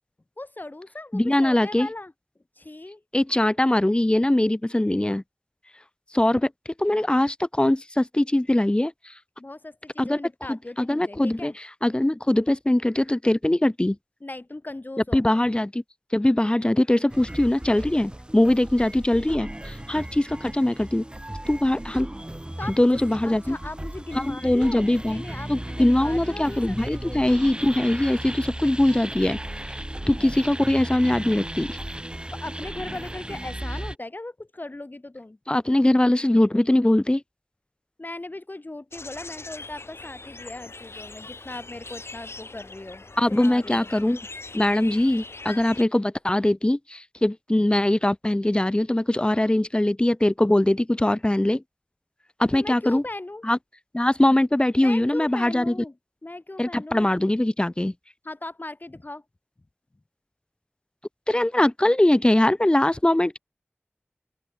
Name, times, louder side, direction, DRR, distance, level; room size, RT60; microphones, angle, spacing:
voice 1, 0.4-2.1 2.6-3.0 9.4-11.6 14.2-15.3 22.6-27.3 30.0-30.1 32.3-35.4 38.0-43.0 43.3-43.9 52.5-53.4 54.8-56.0 56.2-57.1 58.2-59.2, left 2 dB, 45° left, 1.6 m, -38 dB
voice 2, 1.1-1.9 3.1-5.2 6.1-6.5 6.8-8.9 10.0-10.2 10.5-11.5 11.8-14.0 15.1-15.8 16.1-21.0 21.5-22.1 22.8-23.6 24.2-25.2 25.5-29.4 30.1-31.8 35.5-37.2 43.2-44.2 44.5-51.6 52.4-53.0 53.4-53.6 53.9-55.7 56.6-57.9 61.3-63.4, left 1 dB, 25° left, 0.7 m, -21 dB
sound 1, 17.1-34.0, right 1 dB, 25° right, 3.0 m, -36 dB
sound 2, 38.9-45.8, left 3 dB, 85° left, 2.2 m, -41 dB
open air
wide cardioid pair, 50°, 4 cm